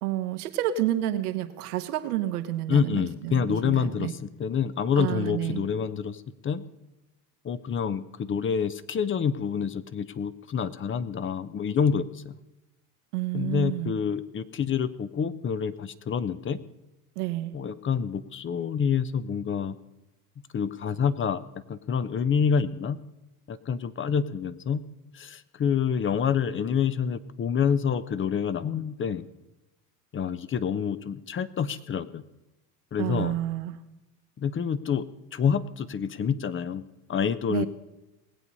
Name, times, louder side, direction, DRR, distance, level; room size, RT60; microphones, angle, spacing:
voice 1, 0.0-4.1 5.0-5.6 13.1-13.9 17.1-17.5 33.0-33.8 37.5-37.7, right 13 dB, 75° right, 9 dB, 1.3 m, -29 dB
voice 2, 2.7-6.6 7.4-12.3 13.3-16.6 17.5-19.8 20.5-21.4 21.7-23.0 23.5-24.8 25.1-29.2 30.1-32.2 32.9-33.4 34.4-35.1 35.3-36.8 37.1-37.7, left 7 dB, 25° left, 15 dB, 0.7 m, -27 dB
19.5 x 8.2 x 5.4 m, 0.98 s
hypercardioid pair, 80°, 45 cm